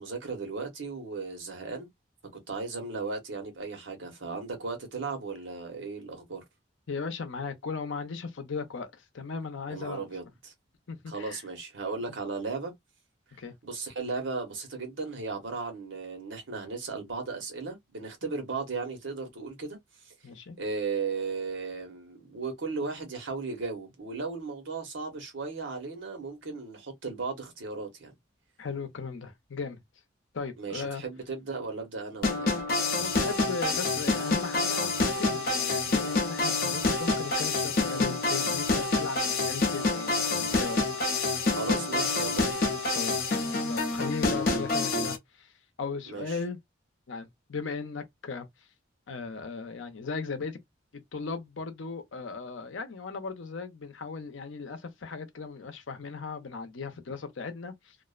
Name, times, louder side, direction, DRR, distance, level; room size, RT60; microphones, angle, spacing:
voice 1, 0.0-1.9 2.5-6.4 9.7-10.5 11.1-12.7 13.6-19.8 20.0-20.1 20.6-28.1 30.6-32.6 41.5-42.6 46.1-46.4, right 4 dB, 80° right, 1.0 m, -36 dB
voice 2, 6.9-10.0 10.9-11.4 13.4-13.5 20.2-20.6 28.6-29.8 30.3-31.0 33.0-40.8 42.9-45.5 45.8-46.6 47.1-48.5 49.1-50.6 50.9-58.0, left 4 dB, 80° left, 0.6 m, -37 dB
sound 1, 32.2-45.2, left 3 dB, 50° left, 0.7 m, -27 dB
2.4 x 2.1 x 2.4 m
head